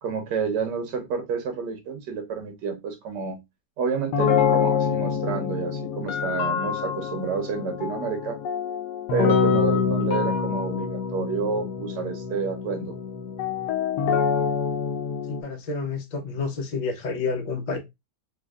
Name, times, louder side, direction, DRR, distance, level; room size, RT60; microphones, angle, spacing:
voice 1, 0.0-3.4 3.8-8.4 9.1-13.0, right 5 dB, 90° right, 1.6 m, -29 dB
sound 1, 4.1-15.4, left 6 dB, 75° left, 1.2 m, -25 dB
voice 2, 15.3-17.8, left 4 dB, 45° left, 0.5 m, -29 dB
4.5 x 2.5 x 2.3 m
omnidirectional pair, 1.8 m